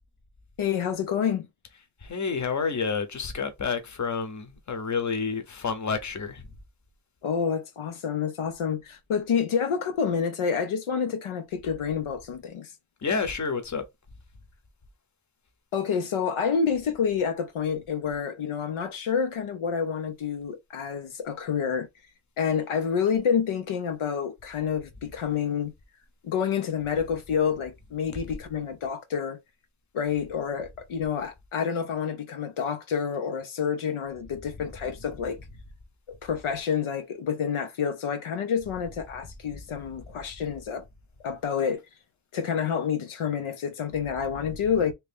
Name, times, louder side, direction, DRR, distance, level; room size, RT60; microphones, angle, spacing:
voice 1, 0.6-1.5 7.2-12.7 15.7-21.9 22.4-25.7 26.2-29.4 29.9-35.4 36.1-40.8 41.2-41.8 42.3-44.9, left 7 dB, 80° left, 0.8 m, -28 dB
voice 2, 2.0-6.4 13.0-13.8, left 5 dB, 35° left, 0.9 m, -29 dB
3.0 x 2.9 x 3.5 m
wide cardioid pair, 100°, 49 cm